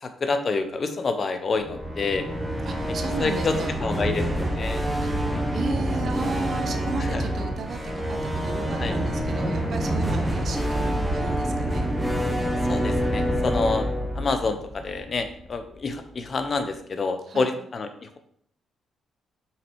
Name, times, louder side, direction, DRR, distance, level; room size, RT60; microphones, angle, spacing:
voice 1, 0.0-2.3 3.2-3.5 3.8-4.8 5.3-5.4 7.1-7.2 8.8-9.0 12.7-13.9 14.2-17.9, left 4 dB, 40° left, 8 dB, 0.8 m, -27 dB
sound 1, 1.5-15.6, equal, 5° right, 1.1 m, -27 dB
voice 2, 2.6-3.8 5.0-5.1 5.5-11.9 17.2-17.5, right 4 dB, 55° right, 6 dB, 1.0 m, -35 dB
5.8 x 4.1 x 4.7 m, 0.66 s
cardioid pair, 90°, 0 cm